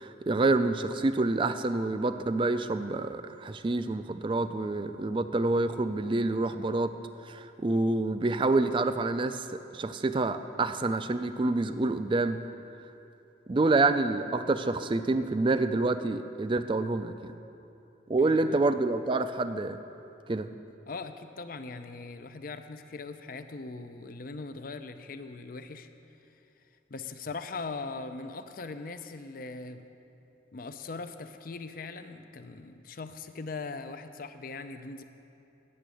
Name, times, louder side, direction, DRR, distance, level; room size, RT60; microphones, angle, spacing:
voice 1, 0.0-6.9 7.2-9.5 9.7-12.4 13.5-17.3 18.1-19.8 20.3-20.5, right 2 dB, 25° right, 10 dB, 0.4 m, -27 dB
voice 2, 18.2-18.6 20.9-25.9 26.2-26.4 26.9-29.9 30.5-35.0, left 3 dB, 50° left, 9 dB, 0.5 m, -40 dB
9.8 x 7.0 x 7.7 m, 2.9 s
head